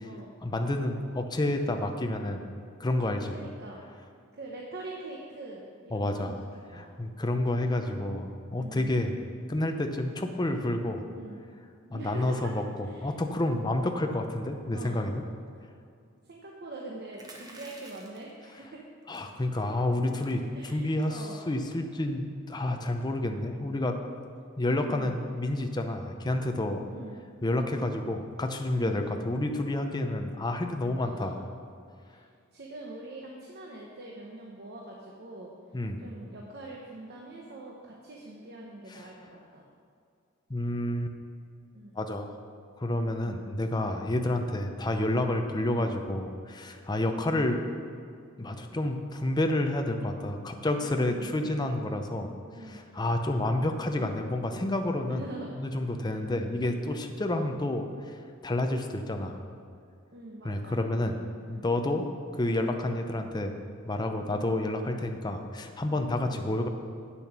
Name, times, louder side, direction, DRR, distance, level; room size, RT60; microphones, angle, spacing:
voice 1, 0.4-2.4 2.8-3.4 5.9-6.4 6.7-9.1 9.5-11.1 11.9-12.6 13.0-15.2 19.1-24.0 24.6-26.8 27.4-31.4 35.7-36.0 39.0-39.1 40.5-41.1 42.0-42.3 42.8-47.6 48.4-52.3 52.7-55.3 55.5-58.2 58.4-59.4 60.4-61.2 61.5-63.5 63.9-66.7, left 1 dB, 20° left, 5 dB, 0.6 m, -29 dB
voice 2, 3.3-3.8 4.3-6.3 6.7-6.9 8.5-9.0 11.1-11.4 11.8-12.5 12.8-13.1 14.7-15.0 15.5-15.6 16.2-18.8 20.5-21.4 24.9-25.2 26.9-27.2 28.7-29.1 31.0-31.4 32.0-35.5 36.0-39.7 41.7-41.9 43.1-43.4 45.5-45.8 50.8-51.3 52.5-52.9 55.1-55.5 56.3-56.6 60.1-60.8 61.4-61.7 64.3-64.6 66.2-66.4, right 2 dB, 50° right, -1 dB, 0.9 m, -44 dB
sound 1, 17.1-18.3 19.1-19.4 19.8-19.9 20.1-20.3 20.9-21.2, right 2 dB, 20° right, 1.1 m, -50 dB
8.4 x 7.1 x 5.9 m, 2.3 s
head